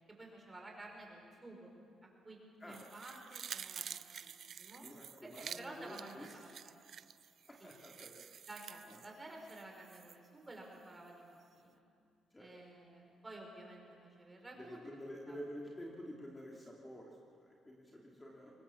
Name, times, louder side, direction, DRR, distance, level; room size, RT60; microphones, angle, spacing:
voice 1, 0.0-1.7 2.0-4.3 4.6-4.9 5.2-6.9 7.6-7.8 8.4-11.8 12.4-14.8 15.3-15.4, right 2 dB, 20° right, 1 dB, 5.5 m, -52 dB
sound 1, 2.7-10.2 10.5-10.6, right 8 dB, 55° right, 0.5 m, -50 dB
voice 2, 4.8-6.3 7.5-8.2 8.9-9.0 12.3-12.5 14.6-18.5, equal, 15° left, -2 dB, 2.9 m, -49 dB
24.0 x 20.5 x 7.2 m, 2.4 s
cardioid pair, 90°, 0 cm